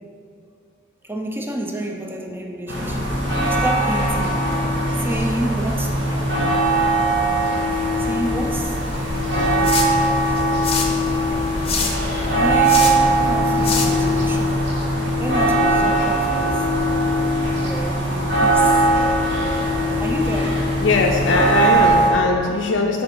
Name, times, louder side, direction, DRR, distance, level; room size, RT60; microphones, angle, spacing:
voice 1, 1.0-3.2 3.5-4.5 5.0-6.1 8.0-8.8 9.3-10.2 12.3-14.6 15.2-16.6 17.6-19.0 20.0-20.7, right 1 dB, 10° right, 2 dB, 0.5 m, -29 dB
sound 1, 2.7-22.1, right 1 dB, 65° right, 1.3 m, -20 dB
sound 2, 8.6-14.5, left 4 dB, 30° left, 0.7 m, -28 dB
voice 2, 20.8-23.0, left 3 dB, 75° left, 0 dB, 0.5 m, -20 dB
7.5 x 4.1 x 4.6 m, 2.5 s
head